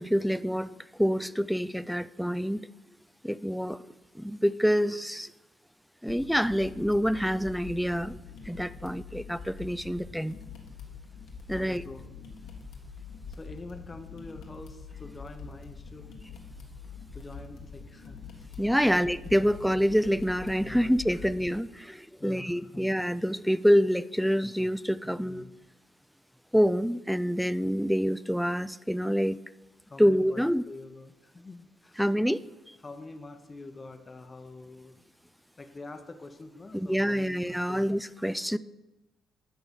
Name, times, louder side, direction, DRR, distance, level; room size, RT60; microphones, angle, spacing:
voice 1, 0.0-2.7 3.2-3.8 4.1-5.3 6.0-10.4 11.5-11.8 18.6-25.4 26.5-29.4 30.0-30.6 32.0-32.4 32.7-32.8 36.7-38.6, equal, ahead, 16 dB, 0.3 m, -27 dB
sound 1, 6.1-21.5, left 5 dB, 80° left, 1.5 m, -45 dB
voice 2, 11.6-12.2 13.3-16.1 17.1-18.5 18.8-19.0 19.4-19.5 20.6-21.5 22.2-22.9 25.0-25.5 29.9-32.0 32.8-35.0 35.6-37.9, left 3 dB, 25° left, 6 dB, 0.8 m, -46 dB
11.0 x 3.9 x 6.8 m, 1.0 s
cardioid pair, 90°, 0 cm